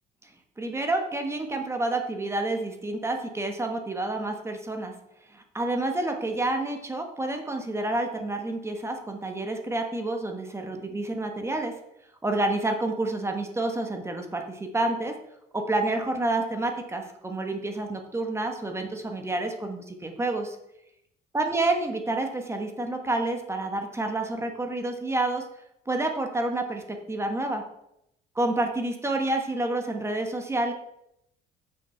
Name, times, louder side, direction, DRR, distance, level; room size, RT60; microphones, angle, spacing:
voice 1, 0.6-4.9 5.3-11.7 12.2-15.1 15.5-20.6 21.3-25.4 25.9-27.6 28.3-30.7, right 2 dB, 15° right, 4 dB, 1.3 m, -29 dB
7.8 x 6.7 x 4.5 m, 0.81 s
cardioid pair, 110°, 17 cm